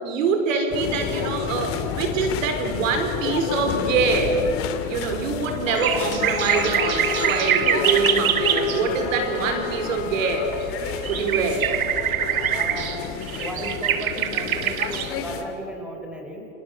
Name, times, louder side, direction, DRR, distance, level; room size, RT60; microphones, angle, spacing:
voice 1, 0.0-4.4 4.8-10.5 11.1-11.7, right 4 dB, 65° right, 6 dB, 4.8 m, -24 dB
sound 1, 0.7-15.4, left 8 dB, 35° left, 2.6 m, -30 dB
sound 2, 5.7-8.8 9.3-9.4 10.2-10.3 10.6-15.1, right 9 dB, 90° right, 2.0 m, -24 dB
Wind instrument woodwind instrument, 6.4-10.8, left 6 dB, 60° left, 4.3 m, -32 dB
voice 2, 12.4-13.0 13.4-16.5, equal, ahead, 1 dB, 5.5 m, -35 dB
29.0 x 27.5 x 7.4 m, 2.9 s
hypercardioid pair, 135°, 41 cm